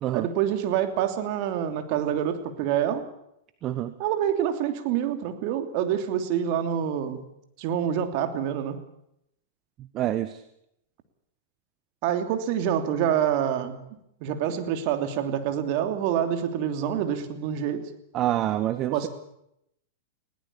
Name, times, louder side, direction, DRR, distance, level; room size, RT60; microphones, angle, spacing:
voice 1, 0.1-3.1 4.0-7.2 7.6-8.8 12.0-13.8 14.2-17.9 18.9-19.1, right 9 dB, 50° right, 7 dB, 3.0 m, -26 dB
voice 2, 3.6-3.9 9.9-10.4 18.1-19.1, right 13 dB, 35° right, 11 dB, 1.2 m, -27 dB
20.5 x 17.5 x 8.6 m, 0.77 s
hypercardioid pair, 110°, 0 cm